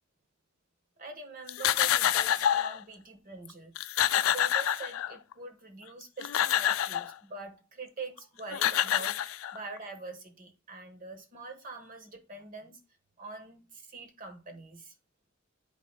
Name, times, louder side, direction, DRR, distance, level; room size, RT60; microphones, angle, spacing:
voice 1, 1.0-3.7 4.1-12.8 13.2-14.9, right 3 dB, 45° right, 5 dB, 1.3 m, -44 dB
sound 1, 1.5-2.8 3.5-3.6 3.8-5.3 6.0-7.1 8.2-8.3 8.5-9.8, left 11 dB, 85° left, 0.3 m, -27 dB
12.0 x 4.0 x 2.2 m, 0.31 s
head